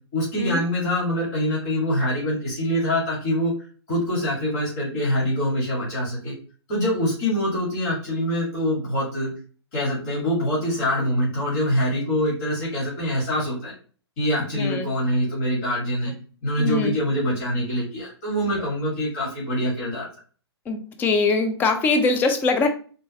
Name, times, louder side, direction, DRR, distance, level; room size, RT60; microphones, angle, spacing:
voice 1, 0.1-3.5 3.9-6.3 6.7-9.3 9.7-13.7 14.2-16.1 16.4-20.1, equal, 40° left, -5 dB, 2.2 m, -24 dB
voice 2, 14.5-14.9 16.6-17.0 20.7-22.7, left 3 dB, 15° left, 6 dB, 0.5 m, -22 dB
4.1 x 3.3 x 3.0 m, 0.39 s
figure-of-eight pair, 125°, 14 cm